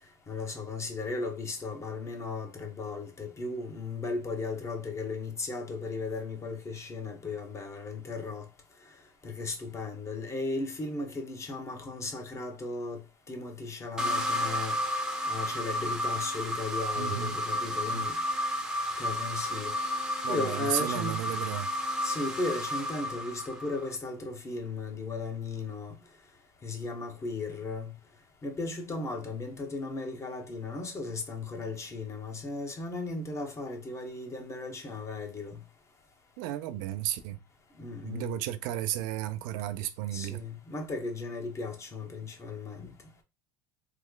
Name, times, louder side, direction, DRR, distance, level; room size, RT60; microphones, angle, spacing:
voice 1, 0.3-8.4 9.2-13.0 13.3-14.8 15.3-18.1 19.0-19.7 20.3-21.2 22.0-26.0 26.6-27.9 28.4-35.6 37.8-38.3 40.1-42.9, left 3 dB, 25° left, 1.0 m, -36 dB
sound 1, 14.0-24.0, left 1 dB, 5° right, 0.8 m, -32 dB
voice 2, 17.0-17.4 17.9-18.0 20.2-21.7 36.4-37.4 38.0-40.4, right 13 dB, 75° right, 0.4 m, -33 dB
3.1 x 2.2 x 3.7 m
supercardioid pair, 95°, 11 cm